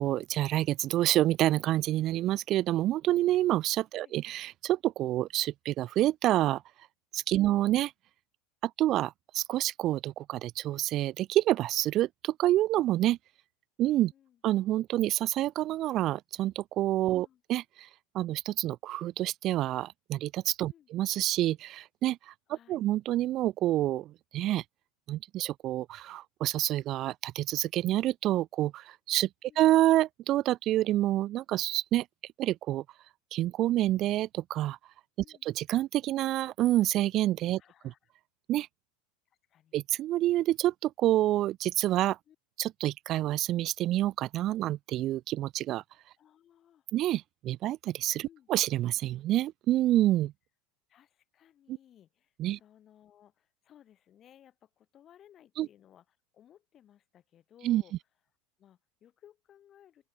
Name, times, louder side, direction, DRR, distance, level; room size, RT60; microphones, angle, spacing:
voice 1, 0.0-6.6 7.1-7.9 8.6-13.2 13.8-14.1 14.4-17.9 18.1-24.6 25.1-32.1 32.4-32.8 33.3-34.8 35.4-37.6 38.5-38.7 39.7-42.2 42.6-45.8 46.9-50.3 51.7-51.8 52.4-52.6 55.6-55.7 57.6-57.8, right 14 dB, 45° right, 0.4 m, -28 dB
voice 2, 7.3-7.7 14.1-14.4 17.1-17.4 20.7-20.9 22.5-22.9 29.4-29.7 35.2-35.5 37.6-38.1 39.3-39.8 42.3-42.4 46.2-46.9 48.2-48.5 50.9-57.9 58.6-60.1, left 10 dB, 40° left, 5.9 m, -60 dB
open air
hypercardioid pair, 90°, 0 cm